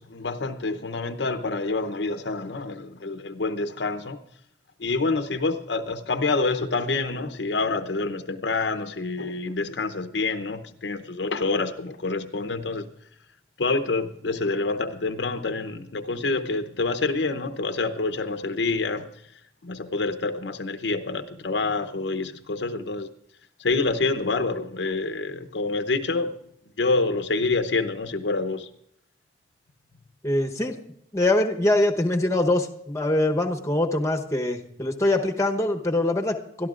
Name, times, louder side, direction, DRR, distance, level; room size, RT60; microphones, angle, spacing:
voice 1, 0.0-4.2 4.8-12.9 13.6-23.1 23.6-26.3 26.8-28.7 30.6-30.7, left 3 dB, 90° left, 0.8 m, -27 dB
voice 2, 30.2-30.8 31.1-36.7, left 1 dB, 15° left, 1.0 m, -23 dB
22.5 x 12.5 x 2.5 m
head